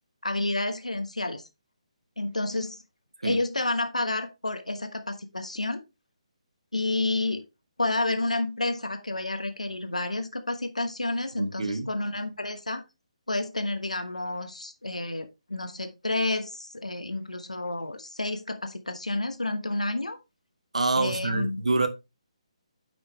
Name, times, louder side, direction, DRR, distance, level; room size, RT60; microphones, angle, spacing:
voice 1, 0.2-1.5 2.2-2.8 3.2-5.8 6.7-7.4 7.8-12.8 13.3-20.2 20.9-21.6, left 2 dB, 80° left, 1.2 m, -30 dB
voice 2, 11.4-11.9 20.7-21.9, right 3 dB, 70° right, 1.5 m, -26 dB
9.4 x 5.3 x 3.1 m
figure-of-eight pair, 140°, 4 cm